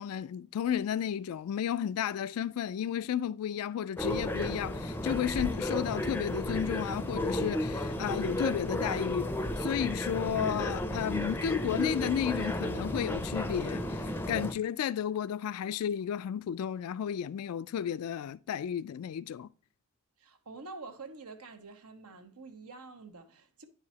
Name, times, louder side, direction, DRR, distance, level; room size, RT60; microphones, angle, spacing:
voice 1, 0.0-19.5, left 9 dB, 75° left, 0.3 m, -33 dB
sound 1, 4.0-14.5, left 1 dB, 10° left, 0.5 m, -33 dB
voice 2, 20.2-23.7, right 3 dB, 85° right, 1.1 m, -47 dB
10.0 x 4.8 x 2.8 m
head